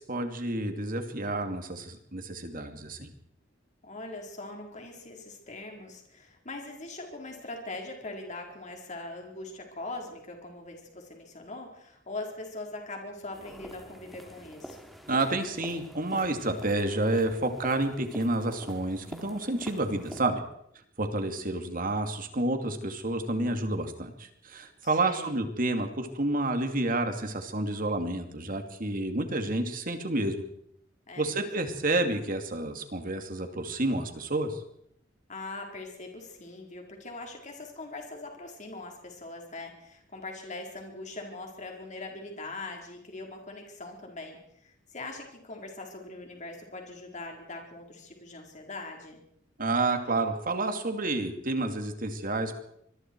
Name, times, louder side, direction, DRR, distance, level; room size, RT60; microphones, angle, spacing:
voice 1, 0.0-3.1 15.1-20.4 21.0-30.4 31.2-34.6 49.6-52.6, right 2 dB, 45° right, 6 dB, 2.6 m, -29 dB
voice 2, 3.8-14.8 24.8-25.4 31.1-31.5 35.3-49.2, left 2 dB, 40° left, 2 dB, 4.5 m, -41 dB
sound 1, 13.3-20.2, equal, ahead, 2.6 m, -46 dB
25.0 x 22.0 x 4.7 m, 0.72 s
head